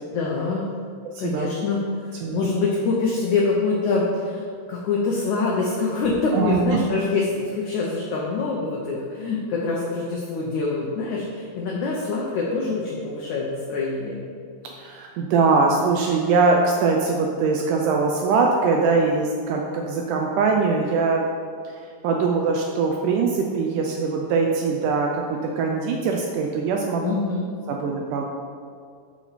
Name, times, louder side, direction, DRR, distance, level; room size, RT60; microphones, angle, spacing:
voice 1, 0.1-0.6 1.2-1.8 2.0-14.2 27.0-27.5, left 3 dB, 75° left, -3 dB, 1.8 m, -25 dB
voice 2, 1.1-1.5 2.2-2.5 6.3-6.8 14.8-21.2 21.6-27.2 27.7-28.2, right 4 dB, 90° right, 1 dB, 1.8 m, -22 dB
12.0 x 4.6 x 4.2 m, 2.2 s
omnidirectional pair, 4.5 m